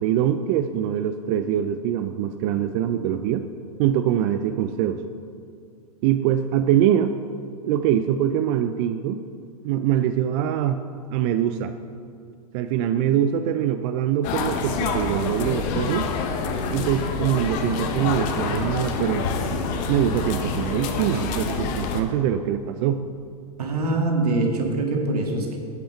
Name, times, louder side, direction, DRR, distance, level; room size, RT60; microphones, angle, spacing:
voice 1, 0.0-3.4 3.8-5.0 6.0-7.1 7.6-9.2 9.6-10.8 11.1-11.7 12.5-16.1 16.7-19.3 19.9-23.0, right 10 dB, 45° right, 9 dB, 0.4 m, -23 dB
sound 1, 14.2-22.0, left 4 dB, 45° left, 0.9 m, -27 dB
voice 2, 23.6-25.6, right 2 dB, 80° right, 2 dB, 1.7 m, -23 dB
8.7 x 5.9 x 5.7 m, 2.4 s
hypercardioid pair, 110°, 19 cm